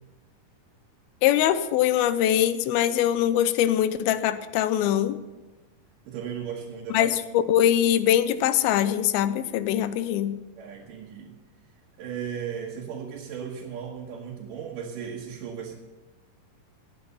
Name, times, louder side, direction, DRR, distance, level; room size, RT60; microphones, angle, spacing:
voice 1, 1.2-5.2 6.9-7.1 7.5-10.4, left 11 dB, 80° left, 13 dB, 2.5 m, -22 dB
voice 2, 6.1-7.1 10.6-11.4 12.0-15.7, right 7 dB, 65° right, -4 dB, 2.7 m, -36 dB
16.5 x 8.9 x 5.6 m, 1.2 s
omnidirectional pair, 4.4 m